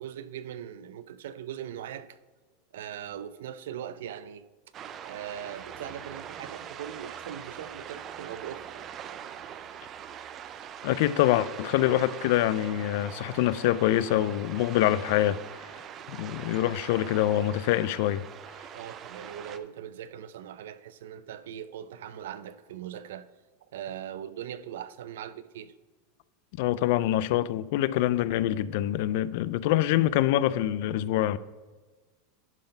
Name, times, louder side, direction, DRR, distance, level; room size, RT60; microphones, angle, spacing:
voice 1, 0.0-2.2 2.7-4.5 5.0-8.9 18.7-23.3 23.7-25.7, right 9 dB, 90° right, 0.5 m, -40 dB
sound 1, 4.7-19.6, right 9 dB, 25° right, 0.4 m, -43 dB
voice 2, 10.8-15.4 16.1-18.2 26.6-31.4, left 13 dB, 55° left, 0.3 m, -25 dB
11.0 x 3.9 x 5.3 m
supercardioid pair, 170°, 0 cm